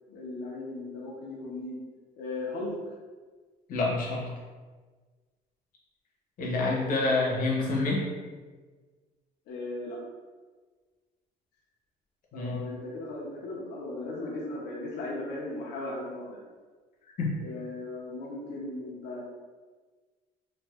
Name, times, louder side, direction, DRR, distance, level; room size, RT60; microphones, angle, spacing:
voice 1, 0.1-1.8 2.2-2.7 9.5-10.0 12.3-16.4 17.4-19.2, left 2 dB, 80° left, -3 dB, 0.8 m, -37 dB
voice 2, 3.7-4.3 6.4-8.1 12.3-12.6 17.2-17.3, left 3 dB, 55° left, -3 dB, 0.9 m, -27 dB
3.2 x 2.4 x 2.4 m, 1.4 s
cardioid pair, 110°, 17 cm